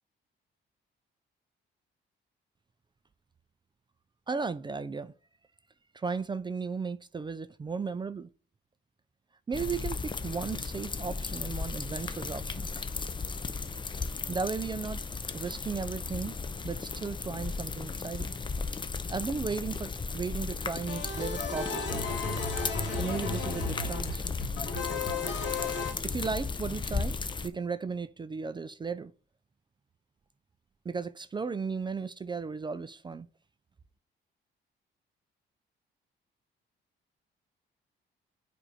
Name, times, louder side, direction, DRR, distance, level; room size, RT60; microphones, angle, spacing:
voice 1, 4.3-5.1 5.9-8.3 9.5-12.7 14.3-15.0 15.3-16.4 16.6-18.3 19.1-22.2 23.0-24.2 26.0-29.1 30.8-33.3, right 5 dB, 25° right, 0.4 m, -35 dB
sound 1, 9.5-27.5, left 4 dB, 25° left, 0.6 m, -35 dB
sound 2, 20.9-25.9, left 4 dB, 65° left, 1.6 m, -34 dB
7.3 x 2.6 x 4.9 m
cardioid pair, 90°, 20 cm